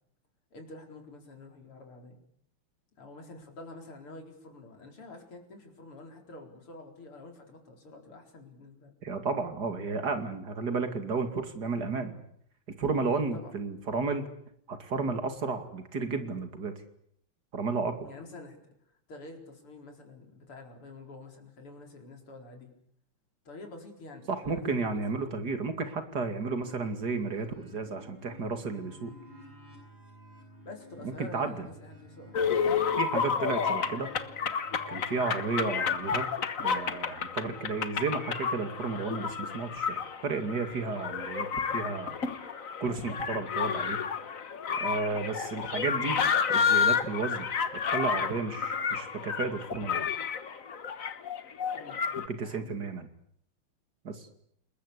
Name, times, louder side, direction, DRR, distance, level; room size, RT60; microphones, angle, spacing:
voice 1, 0.5-2.2 3.0-8.9 13.3-13.5 18.0-18.6 19.1-22.7 23.5-25.4 30.6-32.4 51.7-52.0 52.4-52.8, left 2 dB, 85° left, 3 dB, 5.3 m, -48 dB
voice 2, 9.0-12.2 12.8-14.3 14.7-16.7 17.5-18.1 24.3-29.1 31.0-31.7 33.0-34.1 34.9-36.3 36.6-44.0 44.8-46.2 46.5-47.5 47.8-50.1 52.3-53.1 54.0-54.3, right 4 dB, 50° right, 8 dB, 3.0 m, -33 dB
sound 1, 26.6-36.4, right 1 dB, 90° right, 7.9 m, -52 dB
sound 2, 32.3-52.3, left 6 dB, 45° left, 1.5 m, -31 dB
29.0 x 20.5 x 8.3 m, 0.69 s
omnidirectional pair, 2.4 m